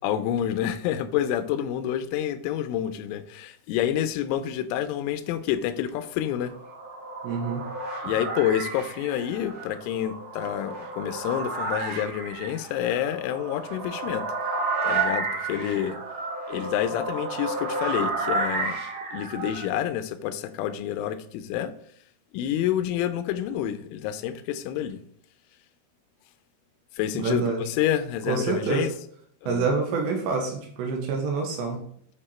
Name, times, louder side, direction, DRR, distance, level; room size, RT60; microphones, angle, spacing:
voice 1, 0.0-6.5 8.0-14.3 14.8-16.0 16.5-18.8 19.1-21.7 22.3-25.0 27.0-28.9 29.4-29.7, left 10 dB, 85° left, 3.1 m, -28 dB
sound 1, 6.2-19.7, right 3 dB, 40° right, 2.1 m, -31 dB
voice 2, 7.2-7.6 27.2-27.6 28.3-28.9 29.5-31.8, right 4 dB, 75° right, 3.1 m, -27 dB
10.0 x 4.6 x 4.3 m
omnidirectional pair, 5.5 m